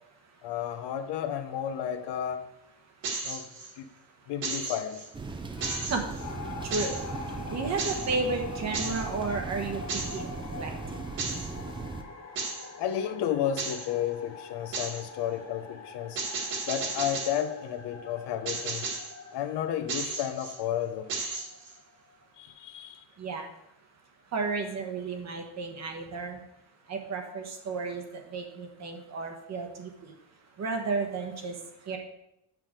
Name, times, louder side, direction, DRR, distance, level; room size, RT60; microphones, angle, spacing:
voice 1, 0.4-2.4 3.2-3.5 3.8-3.9 4.3-5.0 5.6-5.9 12.8-16.2 16.7-18.9 19.3-21.1 22.4-23.0, left 10 dB, 75° left, 9 dB, 0.9 m, -32 dB
sound 1, 3.0-3.7 4.4-5.1 5.6-6.2 6.7-7.0 7.8-8.1 8.7-9.1 9.9-10.2 11.2-11.5 12.4-12.7 13.6-13.9 14.7-15.0 16.2-17.4 18.5-19.1 19.9-20.6 21.1-21.7, right 4 dB, 55° right, 2.0 m, -34 dB
sound 2, 5.1-12.0, right 4 dB, 15° right, 0.3 m, -38 dB
sound 3, 6.2-22.1, left 4 dB, 40° left, 1.0 m, -44 dB
voice 2, 6.7-7.0 7.5-10.3 10.6-10.7 23.2-23.5 24.3-26.4 26.9-28.0 28.3-30.1 30.6-31.5 31.9-32.0, right 4 dB, 40° right, 3 dB, 1.1 m, -32 dB
7.6 x 6.2 x 5.0 m, 0.86 s
cardioid pair, 180°, 42 cm